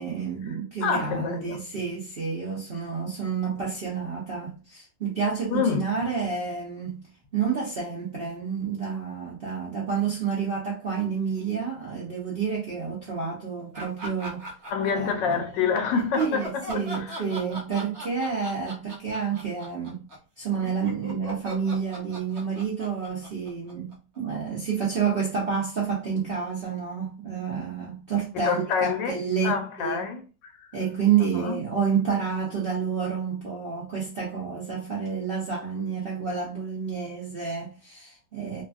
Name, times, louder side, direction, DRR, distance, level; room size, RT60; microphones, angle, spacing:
voice 1, 0.0-14.5 14.9-15.4 16.1-20.1 20.4-30.0 30.7-38.6, right 6 dB, 65° right, 0.5 m, -29 dB
voice 2, 0.8-1.6 5.5-5.8 14.7-17.2 28.4-30.8 31.2-31.6, left 6 dB, 85° left, 1.3 m, -27 dB
sound 1, 13.7-15.3 15.9-24.2, right 1 dB, 45° right, 1.1 m, -39 dB
3.2 x 2.3 x 2.3 m
omnidirectional pair, 1.9 m